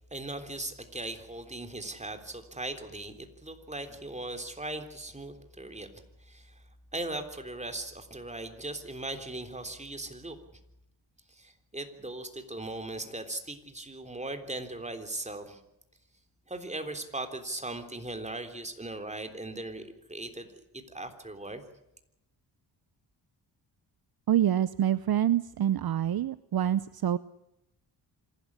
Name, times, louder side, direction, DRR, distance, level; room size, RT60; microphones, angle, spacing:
voice 1, 0.1-5.9 6.2-6.5 6.9-10.4 11.3-15.6 16.5-20.5 20.7-21.6, right 2 dB, 15° right, 6 dB, 3.5 m, -38 dB
voice 2, 24.3-27.2, right 10 dB, 55° right, 16 dB, 0.7 m, -26 dB
26.5 x 12.5 x 10.0 m, 0.86 s
cardioid pair, 85°, 44 cm